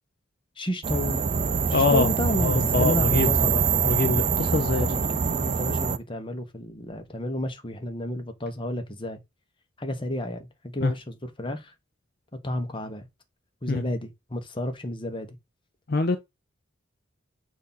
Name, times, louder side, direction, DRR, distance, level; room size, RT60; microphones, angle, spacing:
voice 1, 0.6-1.2 1.7-3.6 4.7-9.2 9.8-11.7 12.3-13.1 13.6-15.4, left 1 dB, 25° left, 1.0 m, -32 dB
sound 1, 0.8-6.0, right 6 dB, 35° right, 0.4 m, -24 dB
voice 2, 1.7-2.1 2.4-3.3 3.8-4.9 10.8-10.9 13.7-13.8 15.9-16.2, left 3 dB, 50° left, 0.6 m, -24 dB
6.6 x 2.7 x 5.5 m
head